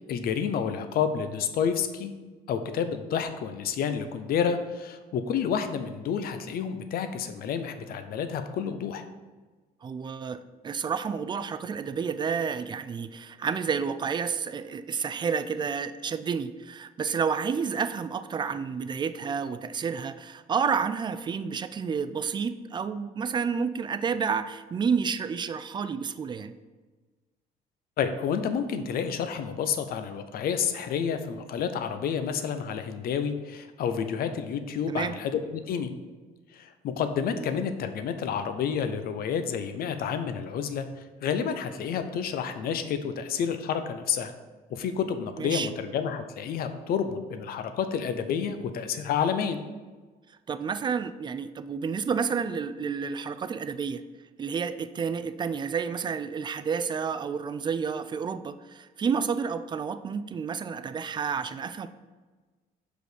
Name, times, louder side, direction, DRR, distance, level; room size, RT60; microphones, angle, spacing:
voice 1, 0.1-2.1 2.5-9.0 28.0-35.9 36.5-40.9 41.2-44.3 44.7-49.6, left 7 dB, 65° left, 9 dB, 0.7 m, -29 dB
voice 2, 9.8-26.5 34.9-35.1 37.3-37.5 45.4-45.7 50.5-54.0 54.4-61.9, right 6 dB, 25° right, 12 dB, 0.4 m, -30 dB
6.2 x 5.0 x 5.0 m, 1.3 s
cardioid pair, 110°, 17 cm